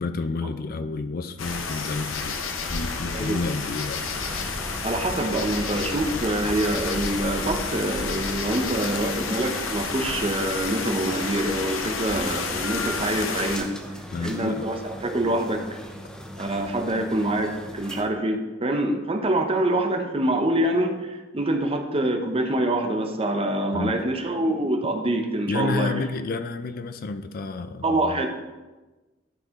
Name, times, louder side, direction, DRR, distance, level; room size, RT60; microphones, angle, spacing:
voice 1, 0.0-2.4 2.7-4.3 14.1-14.7 23.7-24.0 25.5-28.3, left 3 dB, 45° left, 10 dB, 0.4 m, -30 dB
sound 1, 1.4-13.6, left 4 dB, 85° left, 0.8 m, -30 dB
sound 2, 4.1-18.0, equal, 5° left, 0.6 m, -40 dB
voice 2, 4.8-13.7 14.2-15.6 16.4-25.9 27.8-28.3, right 1 dB, 30° right, 5 dB, 0.7 m, -25 dB
12.0 x 4.7 x 3.6 m, 1.2 s
head